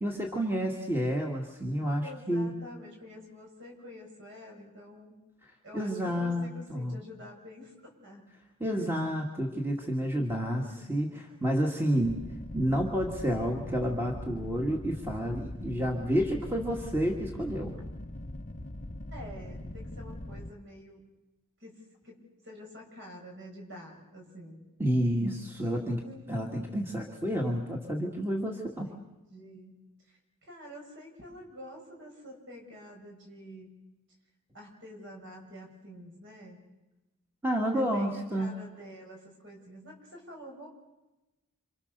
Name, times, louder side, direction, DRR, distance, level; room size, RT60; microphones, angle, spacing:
voice 1, 0.0-2.5 5.4-7.0 8.6-10.6 10.9-11.1 11.4-12.2 12.5-17.7 24.8-26.0 26.3-28.9 37.4-38.5, equal, 10° right, 0 dB, 2.1 m, -30 dB
voice 2, 2.0-5.2 5.6-8.3 8.6-9.0 10.6-11.2 11.8-12.5 18.8-21.1 21.6-24.7 25.9-26.7 28.7-29.0 29.3-29.8 30.1-33.7 34.5-36.6 37.7-40.7, left 1 dB, 55° right, 1 dB, 7.1 m, -48 dB
sound 1, 12.0-20.5, left 1 dB, 35° left, 0.9 m, -41 dB
28.0 x 26.5 x 6.8 m, 1.0 s
head